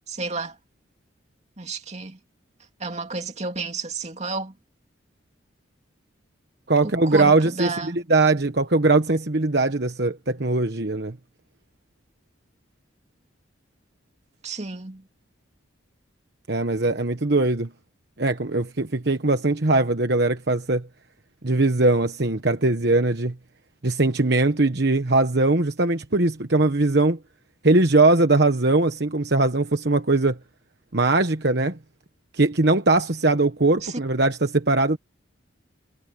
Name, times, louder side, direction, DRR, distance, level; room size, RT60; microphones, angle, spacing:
voice 1, 0.1-0.6 1.6-2.2 2.8-4.5 6.8-8.0 14.4-15.0 33.8-34.0, right 3 dB, 35° right, 2.5 m, -31 dB
voice 2, 6.7-11.1 16.5-17.7 18.2-20.9 21.4-23.3 23.8-27.2 27.6-30.4 30.9-31.8 32.3-35.0, right 2 dB, 55° right, 1.2 m, -20 dB
head